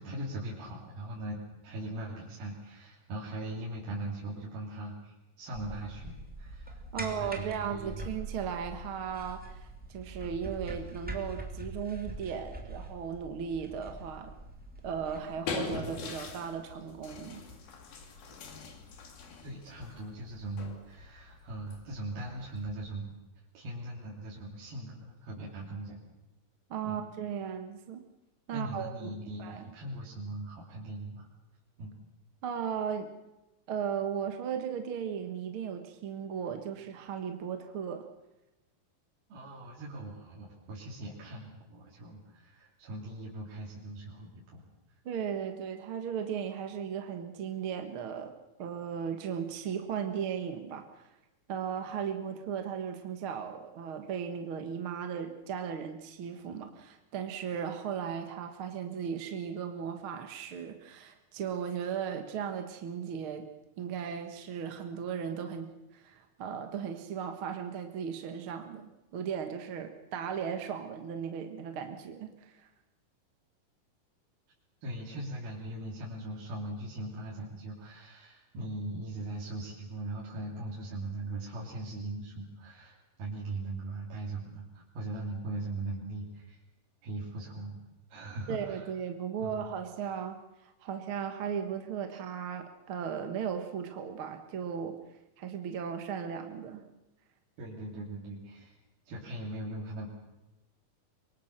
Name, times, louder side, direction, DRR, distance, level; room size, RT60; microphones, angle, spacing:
voice 1, 0.0-8.1 19.4-23.1 23.5-26.0 26.8-27.0 28.5-31.3 31.8-31.9 39.3-44.6 74.8-86.6 87.0-87.7 88.1-88.9 89.4-89.7 92.1-92.2 97.6-98.7 99.1-100.1, right 2 dB, 85° right, -4 dB, 5.0 m, -40 dB
sound 1, 5.5-15.2, right 1 dB, 5° right, 2.3 m, -43 dB
voice 2, 6.9-14.3 14.8-17.4 26.7-28.0 28.5-29.1 29.4-29.6 32.4-33.1 33.7-38.1 45.1-51.1 51.5-63.5 63.8-72.7 88.5-95.0 95.4-96.9, right 7 dB, 50° right, 6 dB, 1.6 m, -36 dB
sound 2, 15.0-23.1, left 5 dB, 85° left, 4.5 m, -43 dB
25.0 x 23.0 x 6.6 m, 0.97 s
omnidirectional pair, 4.1 m